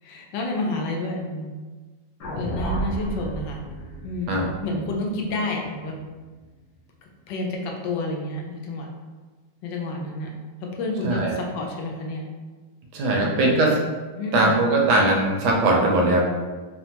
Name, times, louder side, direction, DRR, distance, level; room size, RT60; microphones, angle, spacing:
voice 1, 0.0-1.5 2.3-3.6 4.0-6.0 7.3-8.9 9.6-10.3 10.6-12.3 13.2-13.8 14.2-14.6, left 2 dB, 85° left, 0 dB, 1.3 m, -29 dB
sound 1, 2.2-6.5, right 2 dB, 70° left, 0.9 m, -33 dB
voice 2, 11.0-11.3 12.9-13.7 14.3-16.3, right 2 dB, 75° right, -1 dB, 1.1 m, -20 dB
3.4 x 2.1 x 2.8 m, 1.3 s
omnidirectional pair, 1.9 m